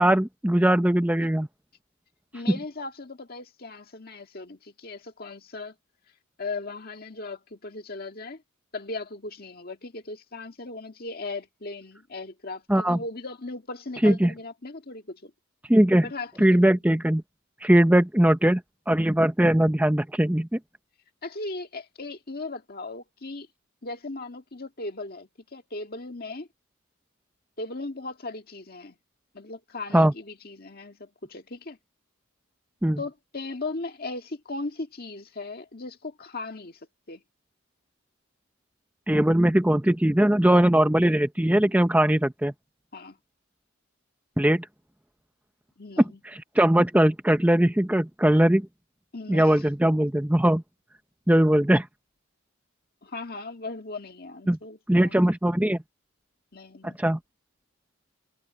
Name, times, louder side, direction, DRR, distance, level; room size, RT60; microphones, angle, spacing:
voice 1, 0.0-1.5 12.7-13.0 14.0-14.3 15.7-16.1 16.4-17.2 17.6-18.6 18.9-20.6 29.9-30.1 32.8-33.0 39.1-42.5 44.4-44.7 46.0-48.7 49.3-50.6 51.3-51.9 54.5-54.6 54.9-55.8 56.8-57.2, right 1 dB, 5° right, 0.6 m, -20 dB
voice 2, 2.3-5.7 6.4-8.4 8.7-15.3 16.0-16.5 21.2-23.5 23.8-26.5 27.6-28.9 29.3-31.8 33.0-36.8 37.1-37.2 42.9-43.2 45.8-46.2 49.1-49.5 53.0-55.2 56.5-57.0, left 3 dB, 45° left, 1.8 m, -37 dB
head